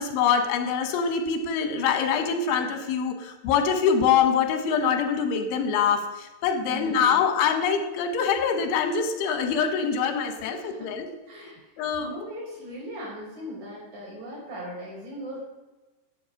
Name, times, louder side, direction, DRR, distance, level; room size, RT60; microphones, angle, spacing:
voice 1, 0.0-11.1 11.8-12.1, left 6 dB, 90° left, 6 dB, 3.7 m, -24 dB
voice 2, 6.6-7.2 10.4-10.9 11.3-15.4, equal, 45° right, -5 dB, 6.4 m, -39 dB
10.5 x 8.4 x 6.5 m, 1.1 s
omnidirectional pair, 5.2 m